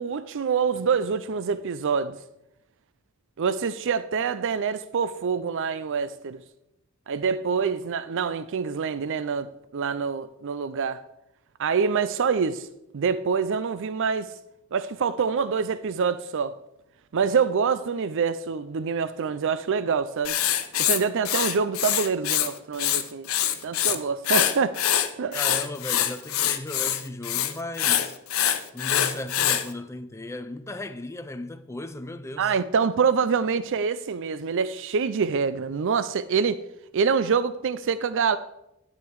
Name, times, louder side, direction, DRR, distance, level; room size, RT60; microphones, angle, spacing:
voice 1, 0.0-2.2 3.4-6.4 7.1-11.0 11.6-12.7 12.9-14.3 14.7-16.5 17.1-20.4 20.8-23.3 23.6-24.8 25.2-25.4 32.4-36.6 36.9-38.4, right 6 dB, 60° right, 0.4 m, -26 dB
Writing, 20.2-22.5 22.7-24.0 24.2-29.6, left 11 dB, 70° left, 1.0 m, -24 dB
voice 2, 25.3-28.2 28.7-32.6, left 1 dB, 15° left, 0.5 m, -36 dB
12.5 x 9.7 x 4.7 m
head